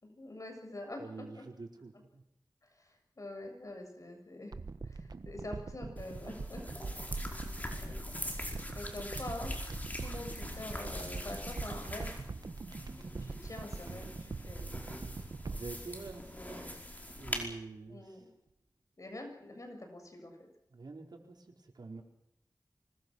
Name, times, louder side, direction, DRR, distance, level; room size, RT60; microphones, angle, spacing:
voice 1, 0.0-1.4 2.7-4.6 4.8-6.7 7.8-8.0 8.7-9.5 10.0-12.2 13.2-14.6 16.3-16.6 17.9-18.3 19.0-20.5, left 1 dB, 50° left, 4 dB, 7.1 m, -45 dB
voice 2, 1.0-2.2 6.8-7.0 15.4-16.8 17.1-18.2 20.7-22.0, right 3 dB, 90° right, 2 dB, 4.7 m, -47 dB
sound 1, 4.5-17.0 17.3-17.4, right 4 dB, 75° right, 1.3 m, -43 dB
sound 2, 6.0-17.5, left 1 dB, 25° left, 5.2 m, -43 dB
25.0 x 21.0 x 6.4 m, 0.83 s
wide cardioid pair, 80°, 7 cm